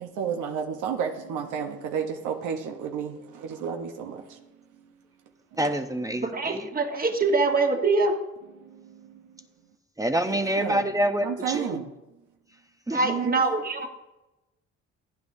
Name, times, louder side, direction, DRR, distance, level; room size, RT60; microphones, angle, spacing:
voice 1, 0.0-3.1 3.6-4.1 10.3-10.8 11.2-11.8 13.0-13.4, right 7 dB, 90° right, 3 dB, 1.0 m, -31 dB
voice 2, 5.6-6.6 10.0-11.8 12.9-13.0, right 1 dB, 10° right, 7 dB, 0.7 m, -26 dB
voice 3, 6.2-8.2 12.9-13.9, right 3 dB, 30° right, 3 dB, 1.4 m, -24 dB
15.5 x 9.5 x 2.7 m, 0.99 s
cardioid pair, 90°, 30 cm